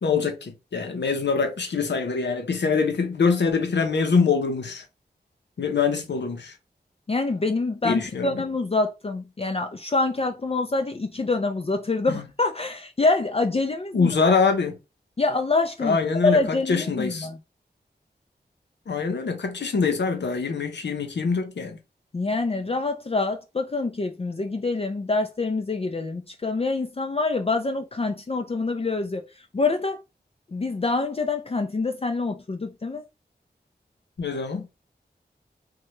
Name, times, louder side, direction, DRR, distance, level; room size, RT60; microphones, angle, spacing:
voice 1, 0.0-4.8 5.6-6.5 7.8-8.4 12.1-12.2 13.9-14.8 15.8-17.3 18.9-21.8 34.2-34.7, left 5 dB, 85° left, 0.6 m, -24 dB
voice 2, 7.1-14.3 15.2-16.0 16.2-17.4 22.1-29.2 29.5-30.0 30.5-33.0, left 3 dB, 35° left, 0.4 m, -26 dB
2.8 x 2.2 x 3.0 m
cardioid pair, 40°, 18 cm